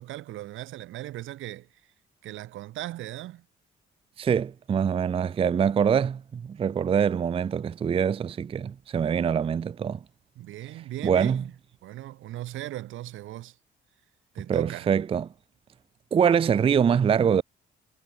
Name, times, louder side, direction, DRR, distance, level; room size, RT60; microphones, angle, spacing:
voice 1, 0.0-1.9 2.2-3.5 10.4-11.5 11.8-13.6 14.3-14.9, right 15 dB, 80° right, 0.9 m, -38 dB
voice 2, 4.2-10.0 11.0-11.4 14.5-15.3 16.1-17.4, right 7 dB, 30° right, 0.4 m, -24 dB
cardioid pair, 90°, 20 cm